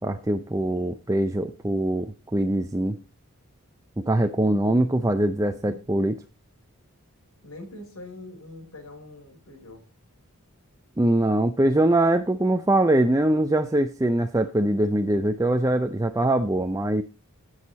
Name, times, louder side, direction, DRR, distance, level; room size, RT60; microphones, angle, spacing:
voice 1, 0.0-3.0 4.0-6.2 11.0-17.0, right 1 dB, 15° right, 7 dB, 0.5 m, -23 dB
voice 2, 4.3-4.9 5.5-5.8 7.4-9.8, left 2 dB, 85° left, 1 dB, 4.9 m, -43 dB
16.0 x 6.5 x 4.2 m, 0.30 s
head